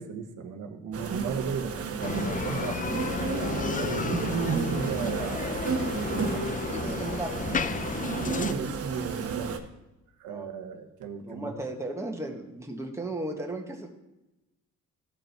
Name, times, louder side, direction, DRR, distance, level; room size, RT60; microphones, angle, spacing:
voice 1, 0.0-2.9 3.7-4.4 4.7-7.2 8.1-9.6 10.2-11.5, right 6 dB, 80° right, 4 dB, 1.2 m, -36 dB
sound 1, 0.9-9.6, right 6 dB, 50° right, 1.1 m, -32 dB
Bicycle, 2.0-8.5, left 6 dB, 25° left, 0.5 m, -32 dB
voice 2, 6.6-7.6 10.3-10.5 11.2-13.9, right 2 dB, 10° right, 1 dB, 1.6 m, -35 dB
14.0 x 5.3 x 4.5 m, 0.99 s
cardioid pair, 90°, 30 cm